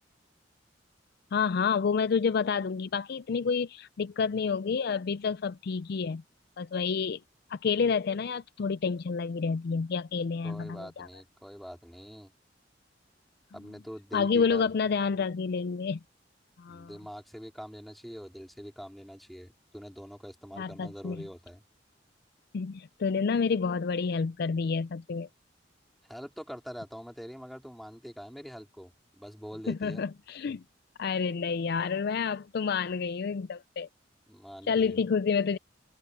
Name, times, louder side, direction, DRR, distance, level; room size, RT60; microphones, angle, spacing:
voice 1, 1.3-6.2 6.6-7.2 7.5-11.1 14.1-16.0 16.6-16.9 20.6-21.2 22.5-25.3 29.7-30.6 31.0-33.9 34.7-35.6, left 5 dB, 60° left, 0.4 m, -29 dB
voice 2, 10.4-12.3 13.5-14.7 16.7-21.6 26.1-30.0 34.3-35.0, equal, ahead, 3.9 m, -44 dB
head